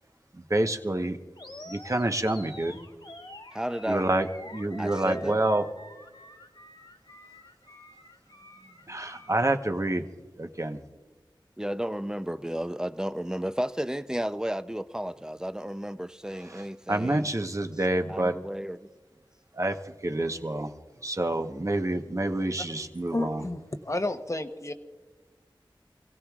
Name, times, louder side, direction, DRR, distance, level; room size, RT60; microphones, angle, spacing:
voice 1, 0.3-1.2 1.7-2.8 3.9-4.3 4.5-5.6 8.9-10.1 10.4-10.8 16.5-18.4 19.5-19.8 20.0-20.7 21.0-23.4, right 1 dB, 35° right, 1.1 m, -27 dB
Animal, 1.4-9.5, left 1 dB, 65° left, 2.0 m, -47 dB
voice 2, 3.5-4.1 4.8-5.4 11.6-17.3 18.1-18.9, equal, 10° right, 0.5 m, -33 dB
voice 3, 23.1-24.7, left 2 dB, 35° left, 1.0 m, -31 dB
27.5 x 17.0 x 2.4 m
wide cardioid pair, 50°, 9 cm